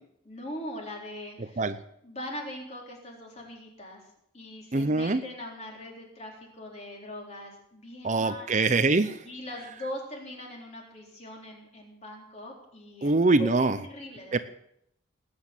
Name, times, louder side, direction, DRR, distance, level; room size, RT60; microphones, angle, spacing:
voice 1, 0.2-1.7 2.0-4.0 4.3-8.5 9.2-13.1 13.4-14.4, left 1 dB, 35° left, 0 dB, 4.1 m, -41 dB
voice 2, 4.7-5.2 8.0-9.2 13.0-13.8 14.3-14.4, right 3 dB, 35° right, 11 dB, 0.6 m, -23 dB
19.5 x 9.5 x 7.3 m, 0.73 s
head